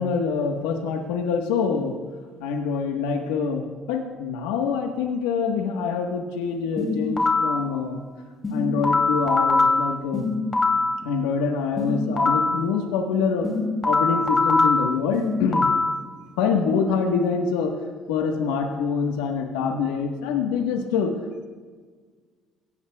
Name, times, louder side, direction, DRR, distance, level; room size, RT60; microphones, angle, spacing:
voice 1, 0.0-2.0 2.4-8.0 8.5-10.3 11.0-13.5 13.8-15.7 16.4-17.7 18.1-21.1, left 5 dB, 85° left, 2 dB, 1.4 m, -25 dB
sound 1, 6.8-7.6 8.4-11.0 11.8-12.6 13.4-16.0, left 3 dB, 25° left, 2.8 m, -22 dB
22.5 x 17.0 x 2.4 m, 1.5 s
supercardioid pair, 75°, 0 cm